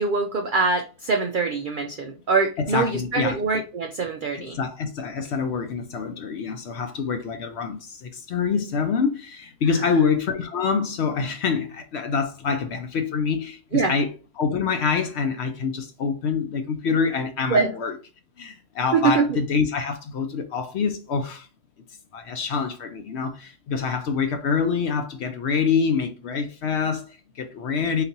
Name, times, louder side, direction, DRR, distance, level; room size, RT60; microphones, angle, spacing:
voice 1, 0.0-4.6 13.7-13.9 17.5-17.7 18.9-19.4, right 4 dB, 75° right, 0.4 m, -23 dB
voice 2, 2.7-3.4 4.3-14.1 14.4-17.9 18.4-21.5 22.1-28.0, left 5 dB, 65° left, 0.7 m, -26 dB
4.1 x 3.9 x 2.7 m
omnidirectional pair, 1.4 m